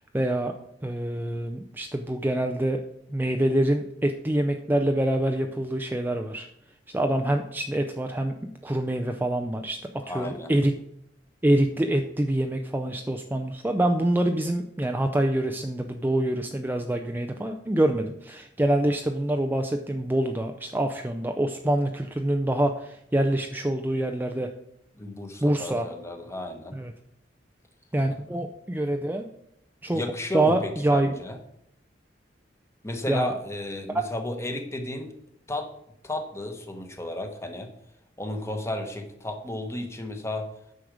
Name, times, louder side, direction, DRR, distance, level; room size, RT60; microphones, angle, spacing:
voice 1, 0.1-0.5 0.8-2.8 3.1-6.5 6.9-8.4 8.6-9.8 10.1-10.7 11.4-24.5 25.4-25.9 26.8-26.9 27.9-29.2 29.8-30.0 30.3-31.1 33.1-33.3 33.9-34.0, right 1 dB, 10° right, 5 dB, 0.5 m, -25 dB
voice 2, 10.0-10.5 25.0-26.8 29.9-31.4 32.8-35.1 35.5-35.7 36.0-37.7 38.2-40.5, left 1 dB, 15° left, 5 dB, 1.2 m, -33 dB
9.6 x 6.4 x 5.0 m, 0.76 s
head